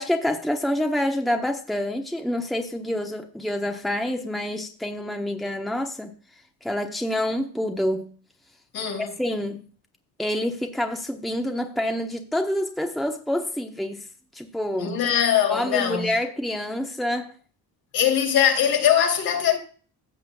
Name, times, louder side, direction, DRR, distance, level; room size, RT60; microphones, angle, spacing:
voice 1, 0.0-6.1 6.6-8.1 9.2-9.6 10.2-14.1 14.3-14.9 15.5-17.3, left 1 dB, ahead, 1.0 m, -27 dB
voice 2, 8.7-9.1 14.8-16.1 17.9-19.6, left 9 dB, 65° left, 3.0 m, -21 dB
15.5 x 7.3 x 2.3 m
cardioid pair, 125°, 39 cm